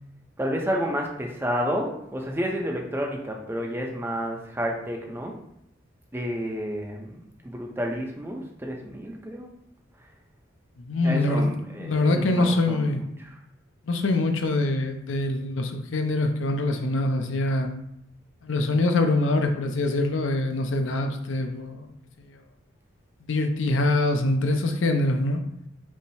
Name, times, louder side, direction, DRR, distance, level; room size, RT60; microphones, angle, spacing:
voice 1, 0.4-5.4 6.1-7.1 7.4-9.5 11.0-13.3, equal, 10° right, 1 dB, 0.6 m, -30 dB
voice 2, 10.8-11.5 11.8-13.0 13.9-17.7 18.4-21.9 23.3-25.4, left 2 dB, 80° left, 5 dB, 0.6 m, -24 dB
5.4 x 2.0 x 4.7 m, 0.73 s
head